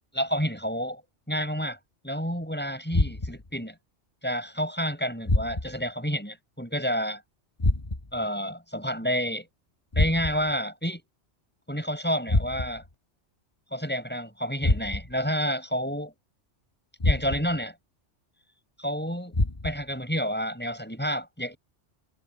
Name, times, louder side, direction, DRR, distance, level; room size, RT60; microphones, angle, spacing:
voice 1, 0.1-1.0 1.3-1.8 2.0-3.7 4.2-7.2 8.1-9.5 10.0-11.0 11.7-12.8 13.7-16.1 17.0-17.7 18.8-19.3 19.6-21.6, equal, 10° left, 7.3 m, -29 dB
sound 1, 2.9-3.5 5.3-5.9 7.6-8.2 9.9-10.6 12.3-12.9 14.6-15.3 17.0-17.6 19.3-19.9, left 2 dB, 25° left, 1.3 m, -26 dB
omnidirectional pair, 1.2 m